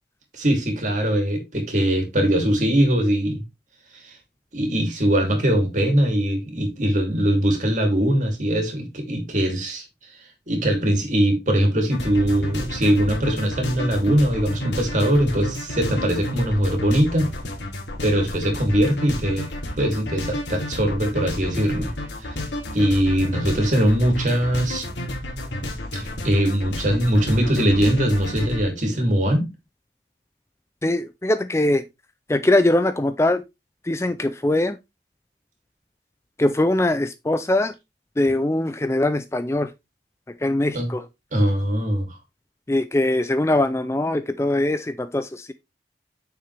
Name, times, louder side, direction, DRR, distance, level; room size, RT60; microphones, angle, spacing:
voice 1, 0.3-3.4 4.0-4.1 4.5-9.8 10.5-17.3 18.0-19.5 19.8-21.9 22.2-22.4 22.7-24.9 25.9-29.5 40.7-40.9 41.3-42.2, equal, 45° right, 2.9 m, -21 dB
sound 1, 11.9-28.6, left 1 dB, 80° left, 2.8 m, -31 dB
voice 2, 30.8-31.8 32.3-33.4 33.8-34.8 36.4-37.7 38.2-39.7 40.4-41.0 42.7-45.5, left 1 dB, 15° left, 0.4 m, -21 dB
9.0 x 6.7 x 3.4 m
head